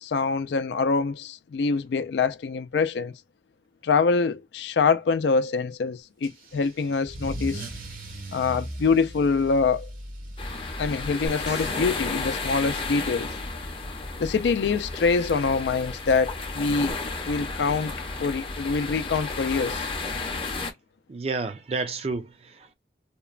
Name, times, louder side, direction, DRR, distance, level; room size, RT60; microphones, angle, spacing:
voice 1, 0.0-3.1 3.8-7.7 8.3-9.9 10.8-13.3 14.2-16.9 17.3-17.9 18.2-19.8, left 4 dB, 75° left, 0.4 m, -25 dB
Car / Engine starting / Accelerating revving vroom, 6.2-13.4, right 1 dB, 50° right, 0.9 m, -39 dB
sound 1, 10.4-20.7, left 3 dB, 30° left, 0.6 m, -33 dB
sound 2, 11.3-13.6 16.9-17.0, right 1 dB, 70° right, 1.2 m, -43 dB
voice 2, 21.1-22.7, right 3 dB, 35° right, 0.4 m, -31 dB
2.9 x 2.1 x 2.3 m
head